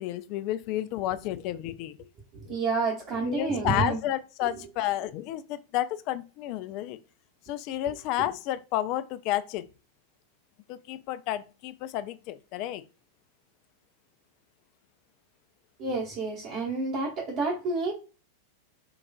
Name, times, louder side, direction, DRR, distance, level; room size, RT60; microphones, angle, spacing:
voice 1, 0.0-2.0 3.2-7.0 7.5-9.7 10.7-12.8, left 13 dB, 45° left, 0.3 m, -31 dB
voice 2, 2.3-4.0 4.4-4.5 15.8-17.9, right 3 dB, 45° right, 1.1 m, -29 dB
4.5 x 2.4 x 2.3 m
figure-of-eight pair, 90°, 0 cm